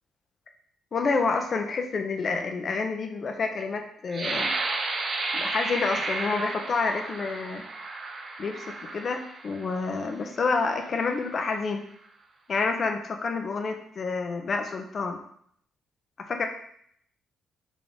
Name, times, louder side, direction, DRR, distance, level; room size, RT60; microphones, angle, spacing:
voice 1, 0.9-4.6 5.3-7.6 8.4-11.9 12.5-15.2 16.2-16.5, left 4 dB, 45° left, 5 dB, 0.7 m, -28 dB
sound 1, 4.1-9.8 10.4-10.6 11.1-11.5, right 3 dB, 40° right, 0.6 m, -32 dB
3.9 x 3.6 x 3.5 m, 0.66 s
cardioid pair, 90°, 0 cm